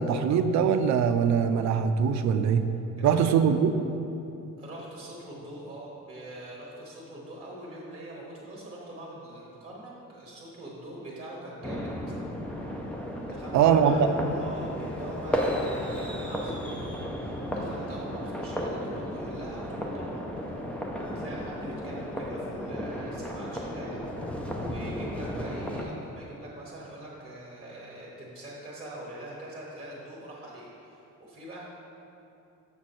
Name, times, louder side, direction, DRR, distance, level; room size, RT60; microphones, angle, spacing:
voice 1, 0.0-2.7 3.0-3.7 13.5-13.9, right 7 dB, 60° right, 9 dB, 0.5 m, -22 dB
voice 2, 3.0-3.4 4.6-12.0 13.2-20.2 21.0-24.0 24.5-31.6, right 1 dB, 20° right, -4 dB, 1.0 m, -43 dB
sound 1, 11.6-25.8, equal, 5° left, 0.4 m, -34 dB
7.0 x 6.3 x 4.2 m, 2.8 s
cardioid pair, 175°, 32 cm